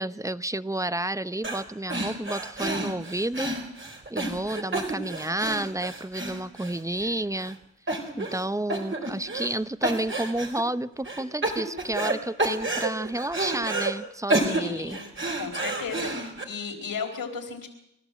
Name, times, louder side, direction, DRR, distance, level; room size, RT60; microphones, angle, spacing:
voice 1, 0.0-3.5 4.1-7.6 8.2-15.0, right 1 dB, 10° right, 16 dB, 0.7 m, -30 dB
sound 1, 1.4-1.6 1.9-7.1 7.4-7.5 7.9-8.4 8.7-9.6 9.8-10.6 11.0-12.1 12.4-13.9 14.3-16.4, right 2 dB, 35° right, 4.2 m, -29 dB
voice 2, 14.3-15.0 15.4-17.7, left 5 dB, 75° left, 3 dB, 4.3 m, -35 dB
29.0 x 12.5 x 7.7 m, 0.84 s
cardioid pair, 60°, 35 cm